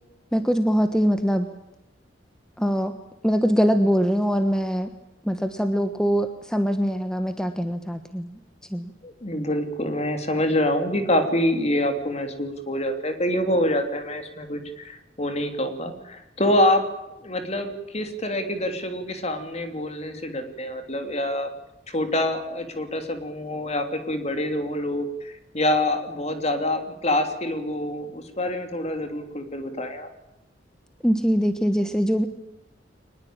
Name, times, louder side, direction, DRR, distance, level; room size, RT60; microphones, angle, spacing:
voice 1, 0.3-1.5 2.6-2.9 3.2-4.9 5.2-8.4 8.7-8.9 31.0-32.3, equal, 5° left, 8 dB, 1.2 m, -23 dB
voice 2, 9.0-16.9 17.2-21.5 21.9-30.1, left 1 dB, 35° left, 7 dB, 3.2 m, -26 dB
23.5 x 20.5 x 8.9 m, 0.93 s
head